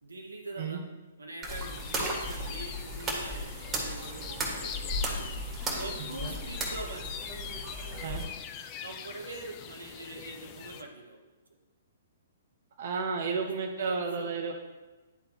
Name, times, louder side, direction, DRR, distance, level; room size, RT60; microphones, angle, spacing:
voice 1, 0.0-0.8 1.2-5.3 5.7-7.2 8.8-11.2 13.4-14.3, right 2 dB, 90° right, 2 dB, 1.1 m, -43 dB
Breaking Ice, 1.4-8.2, right 1 dB, 20° right, 1.7 m, -35 dB
sound 1, 1.5-10.8, left 8 dB, 35° left, 0.5 m, -43 dB
voice 2, 12.8-14.5, right 5 dB, 55° right, 2 dB, 0.8 m, -32 dB
11.0 x 3.9 x 2.9 m, 1.2 s
hypercardioid pair, 125°, 0 cm